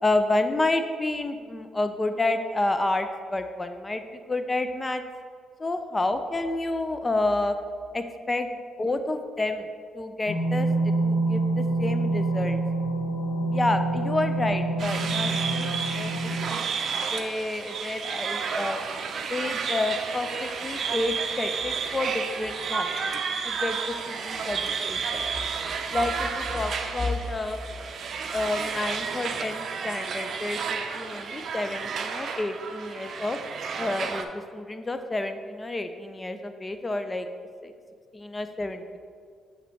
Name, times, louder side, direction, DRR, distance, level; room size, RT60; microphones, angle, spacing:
voice 1, 0.0-5.0 5.6-7.6 7.9-8.5 8.8-9.7 9.9-12.6 13.5-16.7 17.1-18.8 19.3-23.1 23.5-25.3 25.9-27.6 28.3-33.4 33.8-37.3 37.6-37.7 38.1-39.0, left 2 dB, 20° left, 8 dB, 0.4 m, -29 dB
sound 1, 10.3-16.5, right 2 dB, 80° left, 0.6 m, -26 dB
sound 2, 14.8-34.2, right 5 dB, 60° right, 0.5 m, -31 dB
8.2 x 5.0 x 3.1 m, 2.1 s
cardioid pair, 90°, 0 cm